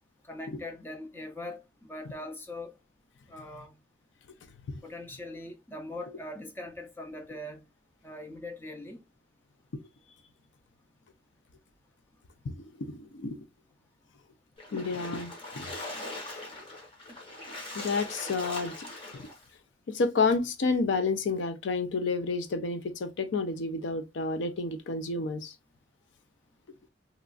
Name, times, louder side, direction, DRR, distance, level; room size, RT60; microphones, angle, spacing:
voice 1, 0.2-1.6 1.9-2.7 3.3-3.7 4.8-7.6 8.0-9.0, left 1 dB, 10° left, 0.4 m, -41 dB
voice 2, 12.4-13.4 14.7-15.7 17.7-18.8 19.1-19.3 19.9-25.5, left 3 dB, 75° left, 0.5 m, -30 dB
Splash splatter, 14.6-19.4, left 2 dB, 30° left, 0.9 m, -41 dB
2.9 x 2.3 x 2.4 m
head